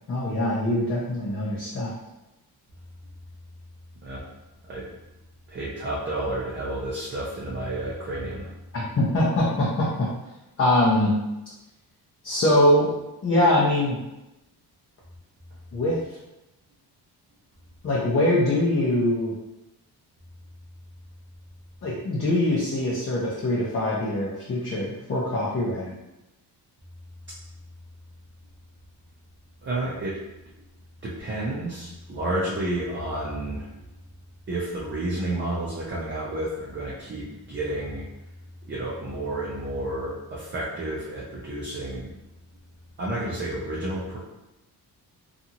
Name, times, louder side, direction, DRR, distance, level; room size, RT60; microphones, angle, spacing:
voice 1, 0.1-1.9 8.7-10.1 10.6-11.1 12.2-12.9 13.2-14.0 15.7-16.0 17.8-19.3 21.8-26.0, left 1 dB, 35° left, -6 dB, 0.6 m, -23 dB
voice 2, 4.6-4.9 5.5-8.5 29.6-30.2 31.0-33.7 34.5-38.0 38.6-42.1 43.0-44.2, right 1 dB, 30° right, -6 dB, 0.5 m, -31 dB
2.7 x 2.5 x 2.7 m, 0.95 s
cardioid pair, 135°, 40 cm